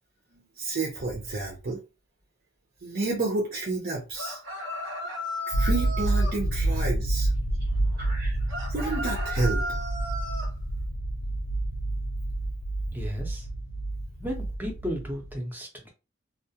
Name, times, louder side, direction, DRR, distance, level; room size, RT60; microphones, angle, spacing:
voice 1, 0.3-1.8 2.8-4.4 5.5-7.3 8.0-8.4 8.7-9.6, right 2 dB, 55° right, 0.6 m, -30 dB
sound 1, 4.1-6.4 8.5-10.5, equal, 90° right, 0.7 m, -35 dB
sound 2, 5.5-15.3, right 1 dB, 70° left, 0.4 m, -29 dB
voice 2, 12.9-13.4 14.2-15.9, equal, 10° right, 0.6 m, -34 dB
2.3 x 2.1 x 2.7 m
head